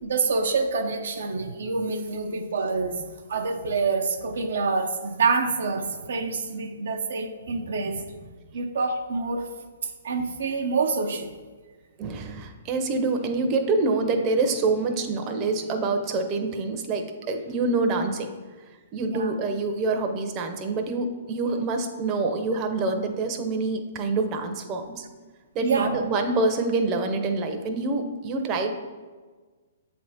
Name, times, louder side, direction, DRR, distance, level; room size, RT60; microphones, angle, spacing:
voice 1, 0.0-9.5 9.8-11.4 19.0-19.3 25.6-26.0, right 4 dB, 70° right, 4 dB, 0.6 m, -27 dB
voice 2, 12.0-18.3 18.9-25.0 25.5-28.7, right 3 dB, 30° right, 5 dB, 0.7 m, -26 dB
7.5 x 3.4 x 4.1 m, 1.4 s
hypercardioid pair, 130°, 0 cm